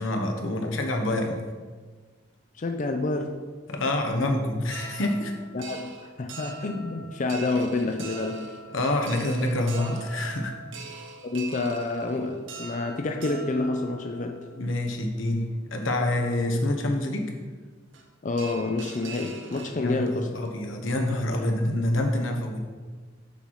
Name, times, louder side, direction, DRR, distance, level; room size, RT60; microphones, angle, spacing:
voice 1, 0.0-1.4 3.7-5.3 8.7-10.5 14.6-17.3 19.8-22.6, left 1 dB, 85° left, 3 dB, 1.2 m, -27 dB
voice 2, 2.5-3.3 4.2-4.3 5.5-8.5 11.2-14.5 18.2-20.5 21.3-21.8, left 3 dB, 40° left, 4 dB, 0.5 m, -29 dB
sound 1, 4.7-14.7 15.4-15.5 15.9-16.0 17.9-18.1 18.4-20.1 20.4-20.5 20.9-21.2, right 4 dB, 70° right, 0.9 m, -43 dB
6.9 x 5.7 x 4.8 m, 1.5 s
head